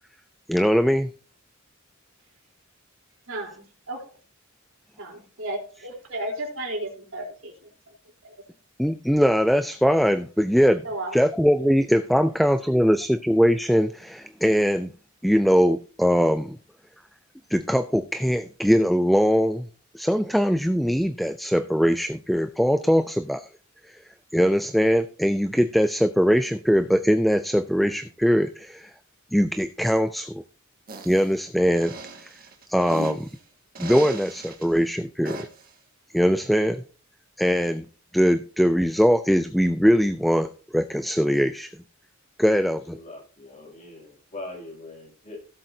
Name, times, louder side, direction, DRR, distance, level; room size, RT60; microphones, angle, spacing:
voice 1, 0.5-1.1 8.8-10.8 11.1-14.9 15.2-16.6 17.5-19.7 19.9-23.5 24.3-28.9 29.3-30.3 31.1-31.9 32.7-33.3 33.8-35.5 36.1-36.8 37.4-37.8 38.1-40.5 40.7-41.7 42.4-43.0, equal, ahead, 10 dB, 0.4 m, -21 dB
voice 2, 3.3-4.0 5.0-7.7 8.2-8.3 10.8-11.2, right 1 dB, 70° right, 0 dB, 3.7 m, -34 dB
sound 1, 30.9-31.3 31.8-33.3 33.7-34.7 35.2-35.7, right 3 dB, 45° right, 1.8 m, -37 dB
voice 3, 42.5-45.4, left 2 dB, 35° left, -2 dB, 6.3 m, -42 dB
17.0 x 7.7 x 2.8 m, 0.38 s
head